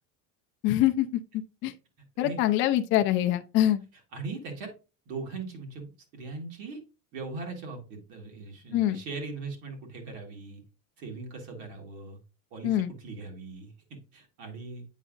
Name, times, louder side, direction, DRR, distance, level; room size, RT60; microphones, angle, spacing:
voice 1, 0.6-1.2 1.6-1.7 2.2-3.8 8.7-9.0 12.6-12.9, left 13 dB, 30° left, 0.4 m, -24 dB
voice 2, 4.1-4.7 5.0-6.8 7.1-10.6 11.0-12.2 12.5-14.8, right 3 dB, 50° right, 1.8 m, -40 dB
8.2 x 4.8 x 2.5 m
cardioid pair, 165°, 41 cm